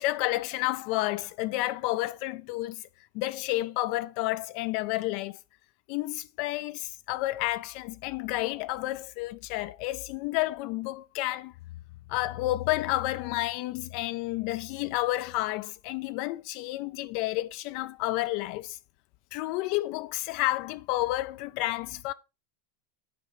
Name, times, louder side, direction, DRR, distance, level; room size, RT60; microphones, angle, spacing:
voice 1, 0.0-5.4 5.9-11.5 12.1-18.8 19.3-22.1, left 17 dB, 55° left, 0.4 m, -30 dB
9.3 x 4.6 x 4.7 m
supercardioid pair, 135°, 0 cm